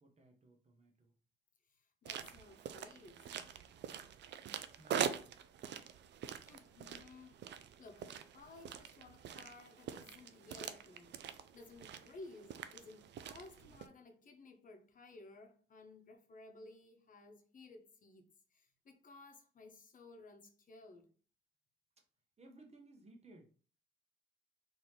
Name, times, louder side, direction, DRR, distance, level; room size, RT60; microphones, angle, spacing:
voice 1, 0.0-1.1 4.4-5.2 22.4-23.5, right 2 dB, 30° right, 1.1 m, -60 dB
voice 2, 1.7-3.3 6.5-7.4 7.8-21.1, left 2 dB, 40° left, 1.0 m, -57 dB
sound 1, 2.1-13.9, right 8 dB, 60° right, 0.4 m, -44 dB
3.9 x 2.9 x 3.2 m
cardioid pair, 90°, 20 cm